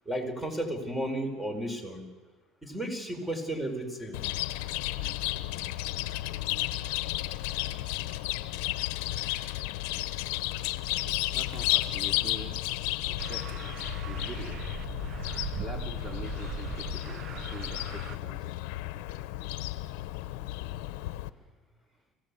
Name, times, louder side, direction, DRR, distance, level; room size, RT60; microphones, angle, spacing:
voice 1, 0.0-2.0 2.6-4.2, right 1 dB, 10° right, 6 dB, 4.9 m, -33 dB
Chirp tweet, 4.1-21.3, left 17 dB, 80° left, 0.9 m, -33 dB
voice 2, 11.3-12.6 13.1-13.7 14.1-14.6 15.6-18.5 21.3-21.5, right 3 dB, 25° right, 2 dB, 2.9 m, -44 dB
sound 1, 13.2-18.2, right 9 dB, 45° right, 0.7 m, -40 dB
26.0 x 16.5 x 8.5 m, 1.3 s
supercardioid pair, 105°, 0 cm